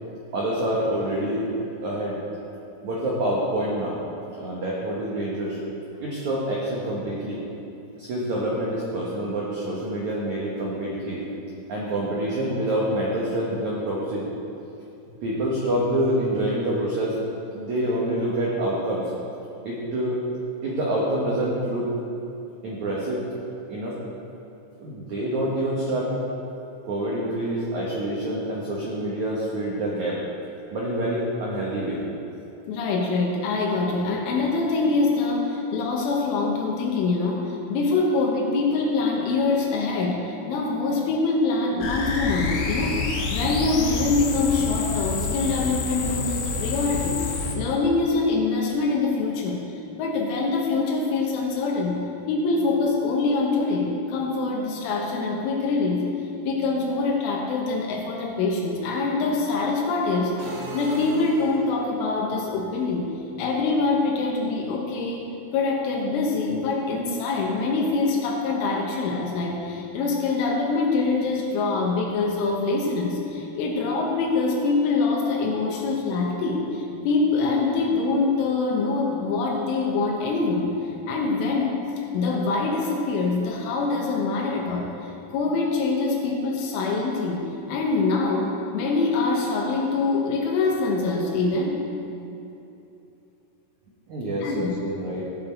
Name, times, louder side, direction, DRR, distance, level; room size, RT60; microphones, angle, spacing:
voice 1, 0.3-1.5 1.8-2.2 2.8-4.0 4.3-5.6 6.0-7.4 8.0-11.2 11.7-14.3 15.2-17.1 17.5-19.1 19.6-20.2 20.6-21.9 22.6-23.2 23.7-24.0 24.8-26.1 26.8-30.2 30.7-32.0 94.1-95.2, right 1 dB, 85° right, -5 dB, 1.6 m, -26 dB
voice 2, 32.7-49.7 50.0-56.1 56.4-63.1 63.4-65.2 65.5-80.8 81.1-81.8 82.1-84.9 85.3-91.8 94.4-94.8, left 3 dB, 90° left, -2 dB, 3.6 m, -24 dB
sound 1, 41.8-47.6, left 4 dB, 70° left, 2.6 m, -28 dB
sound 2, 60.4-62.0, right 1 dB, 60° right, 3.1 m, -36 dB
16.5 x 6.2 x 4.4 m, 2.8 s
omnidirectional pair, 5.5 m